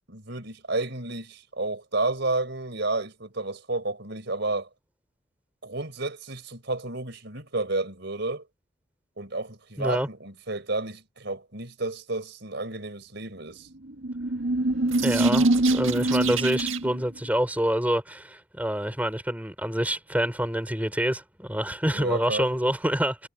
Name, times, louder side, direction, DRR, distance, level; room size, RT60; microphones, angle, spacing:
voice 1, 0.1-4.7 5.6-8.5 9.2-13.7 21.9-22.5, right 2 dB, 55° right, 5.0 m, -31 dB
voice 2, 9.8-10.1 15.0-23.3, equal, 10° right, 3.8 m, -27 dB
sound 1, 13.8-17.1, right 2 dB, 75° right, 1.7 m, -23 dB
head